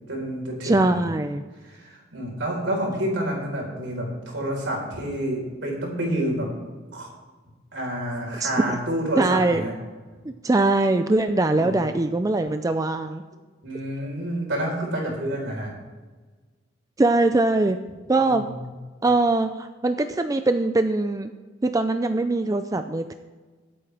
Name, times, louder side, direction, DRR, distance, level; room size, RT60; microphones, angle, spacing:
voice 1, 0.1-1.1 1.6-6.5 6.9-7.1 7.7-9.7 11.5-11.8 13.6-15.7 18.2-18.7, right 1 dB, 70° right, -1 dB, 4.3 m, -29 dB
voice 2, 0.6-1.4 8.4-8.8 9.2-9.7 10.3-13.2 17.0-17.8 18.1-18.4 19.0-21.3 21.6-23.1, right 2 dB, 20° right, 8 dB, 0.4 m, -22 dB
22.0 x 8.5 x 3.4 m, 1.3 s
head